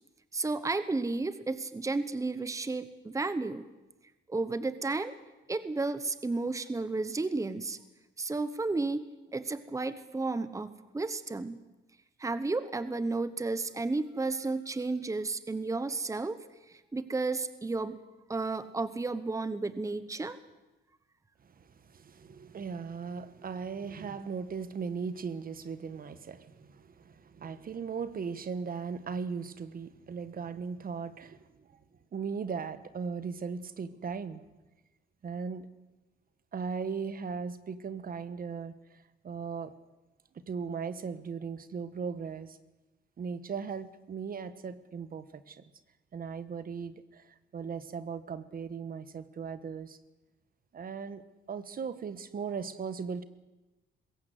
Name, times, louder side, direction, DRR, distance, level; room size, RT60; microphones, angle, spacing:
voice 1, 0.3-3.6 4.3-5.2 5.5-7.8 8.2-9.1 9.3-11.6 12.2-16.4 16.7-18.0 18.3-20.4, right 3 dB, 15° right, 13 dB, 1.0 m, -32 dB
voice 2, 21.4-31.8 32.1-34.4 35.2-35.7 36.5-39.7 40.5-42.6 43.2-45.6 46.1-50.0 50.7-51.2 51.5-53.2, right 5 dB, 45° right, 13 dB, 1.2 m, -38 dB
21.0 x 16.5 x 7.9 m, 1.1 s
cardioid pair, 90°, 20 cm